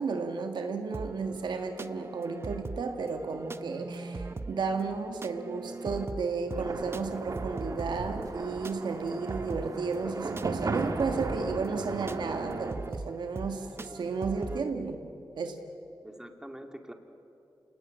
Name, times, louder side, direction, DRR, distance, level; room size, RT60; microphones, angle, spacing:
voice 1, 0.0-15.0 15.4-15.6, right 4 dB, 80° right, 5 dB, 1.9 m, -33 dB
sound 1, 0.9-14.6, right 3 dB, 35° right, 0.8 m, -41 dB
sound 2, 6.5-12.7, right 3 dB, 50° right, 1.9 m, -36 dB
voice 2, 6.8-7.3 13.8-14.0 16.0-16.9, right 1 dB, 10° right, 5 dB, 2.4 m, -46 dB
28.5 x 19.0 x 9.0 m, 2.8 s
wide cardioid pair, 100°, 8 cm